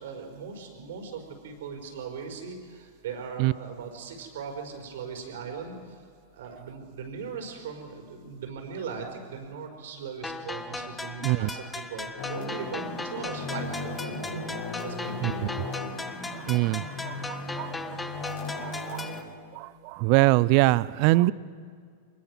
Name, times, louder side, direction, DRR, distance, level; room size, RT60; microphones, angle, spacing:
voice 1, 0.0-6.0 6.3-14.3 14.8-15.5 16.1-16.2, right 6 dB, 70° right, 3 dB, 4.8 m, -39 dB
sound 1, 10.2-19.2, left 3 dB, 10° left, 1.0 m, -38 dB
sound 2, 12.2-19.2, left 3 dB, 75° left, 7.2 m, -36 dB
voice 2, 16.5-17.1 17.6-17.7 18.6-19.0 20.0-21.3, right 20 dB, 50° right, 20 dB, 0.6 m, -22 dB
24.0 x 20.5 x 6.2 m, 2.1 s
hypercardioid pair, 110°, 0 cm